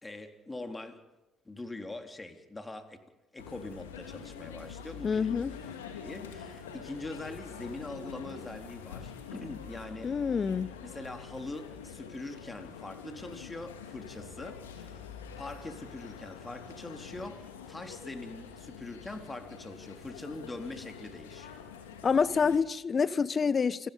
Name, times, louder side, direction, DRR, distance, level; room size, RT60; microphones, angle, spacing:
voice 1, 0.0-1.0 1.5-3.0 3.3-5.3 6.0-10.1 10.8-15.0 15.4-21.7, left 2 dB, 20° left, 3.9 m, -43 dB
sound 1, 3.4-22.6, left 7 dB, 85° left, 3.2 m, -46 dB
voice 2, 5.0-5.6 10.0-10.7 22.0-23.9, left 5 dB, 35° left, 1.1 m, -27 dB
29.0 x 19.0 x 5.5 m
hypercardioid pair, 55°, 0 cm